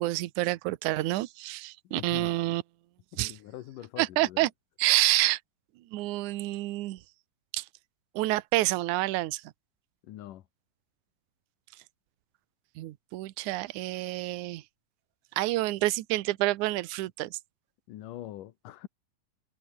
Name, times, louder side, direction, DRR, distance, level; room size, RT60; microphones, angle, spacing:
voice 1, 0.0-2.6 3.2-3.3 4.0-4.5 4.8-5.4 5.9-7.0 7.5-7.7 8.2-9.4 12.8-14.6 15.4-17.4, right 18 dB, 70° right, 2.1 m, -28 dB
voice 2, 1.8-2.4 3.1-4.5 10.0-10.5 17.9-18.9, left 13 dB, 70° left, 2.7 m, -43 dB
omnidirectional pair, 4.0 m